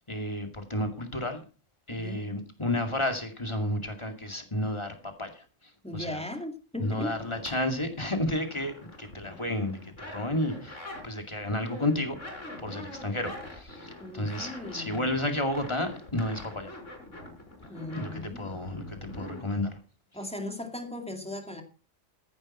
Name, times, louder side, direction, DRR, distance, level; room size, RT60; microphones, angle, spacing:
voice 1, 0.1-1.4 1.9-5.4 5.9-6.2 6.8-12.2 12.6-16.7 17.9-19.8, left 1 dB, 25° left, 2.4 m, -31 dB
voice 2, 1.9-2.4 5.8-7.2 14.0-15.1 17.7-18.5 20.1-21.6, left 1 dB, 5° left, 2.2 m, -38 dB
sound 1, 6.8-7.5 7.8-11.1 11.3-19.4, left 1 dB, 80° left, 4.9 m, -44 dB
14.5 x 11.0 x 4.4 m
omnidirectional pair, 1.3 m